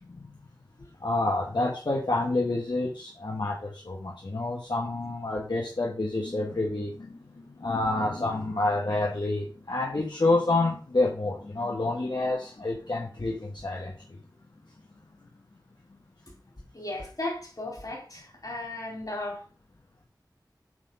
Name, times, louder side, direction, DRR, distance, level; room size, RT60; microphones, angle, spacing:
voice 1, 1.0-14.2, left 2 dB, 75° left, 1.6 m, -28 dB
voice 2, 16.7-19.4, left 2 dB, 55° left, 4.1 m, -35 dB
8.8 x 4.0 x 5.5 m
wide cardioid pair, 45°, 8 cm